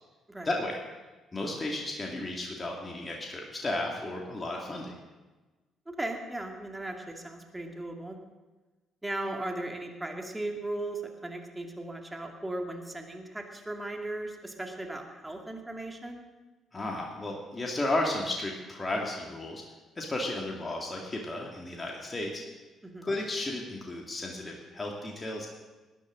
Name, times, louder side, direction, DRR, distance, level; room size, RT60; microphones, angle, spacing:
voice 1, 0.4-0.8 1.3-5.0 16.7-19.6 20.0-22.4 23.0-25.5, left 2 dB, 25° left, 0 dB, 2.3 m, -33 dB
voice 2, 5.9-8.2 9.0-16.2 22.8-23.1, right 2 dB, 15° right, 3 dB, 2.3 m, -37 dB
19.5 x 10.5 x 3.9 m, 1.2 s
hypercardioid pair, 45°, 0 cm